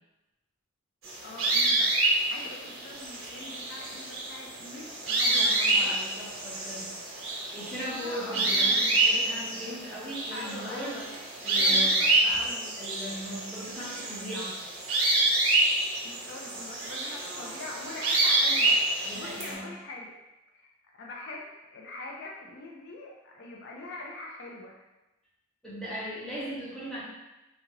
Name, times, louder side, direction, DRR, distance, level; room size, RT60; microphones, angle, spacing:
sound 1, 1.0-19.5, right 2 dB, 85° right, 0.8 m, -27 dB
voice 1, 1.2-6.0 7.7-8.8 10.3-11.1 11.5-12.8 16.0-20.1 20.5-20.7 21.0-24.8, left 2 dB, 60° left, -1 dB, 0.4 m, -43 dB
voice 2, 5.3-6.9 7.4-11.0 11.4-12.4 12.8-14.5 19.0-19.7 25.6-27.0, equal, 5° left, -9 dB, 0.9 m, -39 dB
2.8 x 2.3 x 3.0 m, 0.99 s
head